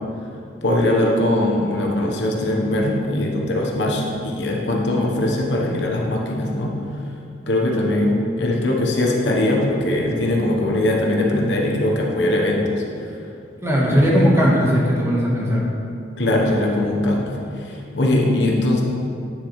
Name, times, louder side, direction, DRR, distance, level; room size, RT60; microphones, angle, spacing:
voice 1, 0.6-6.7 7.5-12.7 13.0-13.1 13.9-14.2 16.2-18.8, left 1 dB, 70° left, -1 dB, 1.1 m, -21 dB
voice 2, 13.6-15.7, equal, 15° right, -5 dB, 1.3 m, -17 dB
9.2 x 7.3 x 3.2 m, 2.6 s
head